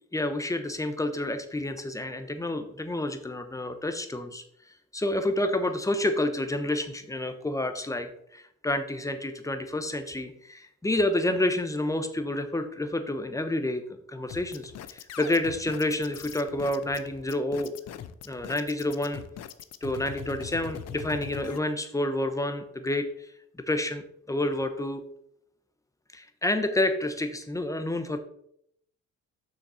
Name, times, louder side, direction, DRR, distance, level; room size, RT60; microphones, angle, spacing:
voice 1, 0.1-4.4 4.9-13.8 14.1-17.7 18.2-19.2 19.8-23.3 23.7-25.0 26.1-28.2, left 1 dB, 10° left, 8 dB, 1.0 m, -29 dB
sound 1, 14.3-21.6, left 9 dB, 55° left, 0.6 m, -41 dB
6.4 x 6.2 x 4.3 m, 0.71 s
cardioid pair, 90°, 30 cm